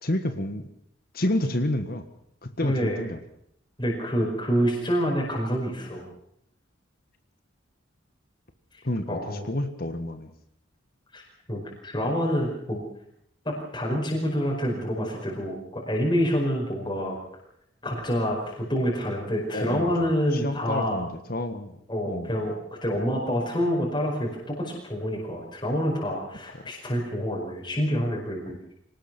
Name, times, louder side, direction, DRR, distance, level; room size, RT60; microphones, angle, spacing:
voice 1, 0.0-0.6 1.1-2.0 2.4-3.2 8.8-10.3 19.5-21.7 22.1-22.3, left 1 dB, 45° left, 8 dB, 1.6 m, -29 dB
voice 2, 2.6-3.0 3.8-6.1 9.1-9.4 11.1-11.2 11.5-12.8 13.5-17.2 17.8-21.0 21.9-28.6, equal, 25° left, -3 dB, 5.3 m, -27 dB
25.0 x 19.0 x 6.1 m, 0.75 s
head